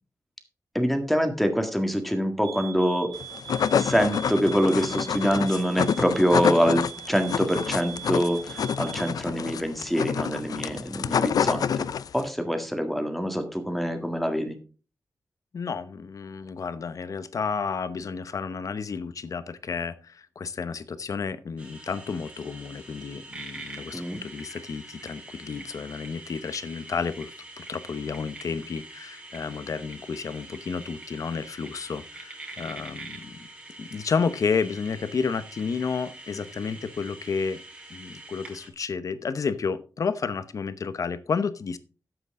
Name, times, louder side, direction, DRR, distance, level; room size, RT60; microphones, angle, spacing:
voice 1, 0.8-3.2 3.8-11.8 12.1-14.6 23.9-24.2, equal, ahead, 6 dB, 1.7 m, -25 dB
sound 1, 2.4-9.2, right 11 dB, 80° right, 2.6 m, -42 dB
sound 2, 3.2-12.3, left 7 dB, 80° left, 0.4 m, -27 dB
voice 2, 15.5-33.4 33.8-37.6 37.9-41.8, left 5 dB, 60° left, 13 dB, 0.9 m, -31 dB
sound 3, 21.6-38.7, right 2 dB, 20° right, 3.3 m, -44 dB
12.5 x 8.1 x 3.7 m, 0.36 s
wide cardioid pair, 170°, 6 cm